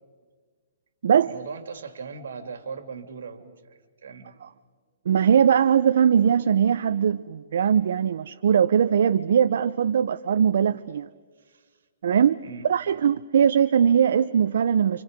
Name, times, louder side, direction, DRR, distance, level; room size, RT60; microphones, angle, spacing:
voice 1, 1.2-4.3 11.4-11.8 12.4-12.7, right 5 dB, 85° right, 2.5 m, -39 dB
voice 2, 5.1-11.1 12.0-12.4 12.7-15.0, right 8 dB, 70° right, 0.6 m, -20 dB
29.0 x 27.0 x 5.2 m
hypercardioid pair, 160°, 0 cm